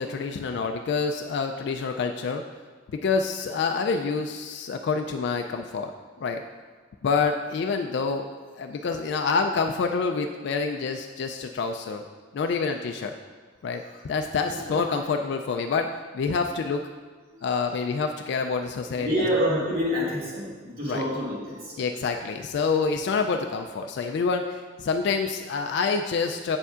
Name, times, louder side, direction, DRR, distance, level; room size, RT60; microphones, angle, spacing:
voice 1, 0.0-2.4 2.9-5.9 6.2-6.4 7.0-8.3 8.6-12.0 12.3-13.1 13.6-16.9 17.4-19.3 20.8-21.0 21.8-26.6, left 4 dB, 65° left, 4 dB, 0.3 m, -27 dB
voice 2, 14.5-14.8 17.3-17.4 19.0-21.8, equal, 55° right, -6 dB, 2.1 m, -27 dB
7.8 x 6.8 x 2.4 m, 1.4 s
head